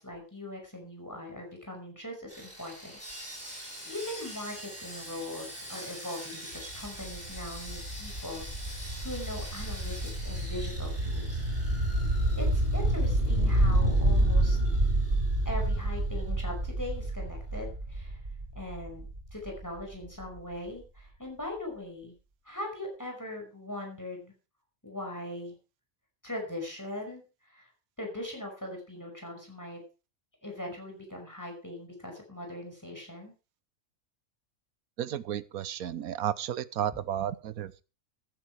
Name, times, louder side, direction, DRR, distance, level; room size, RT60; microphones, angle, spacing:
voice 1, 0.0-2.9 3.3-11.5 12.4-14.6 15.5-18.2 18.6-22.1 22.5-24.3 24.8-25.5 26.2-27.7 28.0-29.8 30.4-33.3 36.9-37.0, left 1 dB, 10° left, 1 dB, 5.5 m, -40 dB
Sawing, 2.3-16.5 16.8-17.0 17.4-17.6, equal, 10° right, 7.4 m, -45 dB
sound 1, 6.5-20.3, right 1 dB, 40° right, 3.6 m, -28 dB
voice 2, 35.0-37.8, right 10 dB, 90° right, 17 dB, 1.3 m, -33 dB
14.5 x 11.0 x 4.6 m, 0.32 s
omnidirectional pair, 1.5 m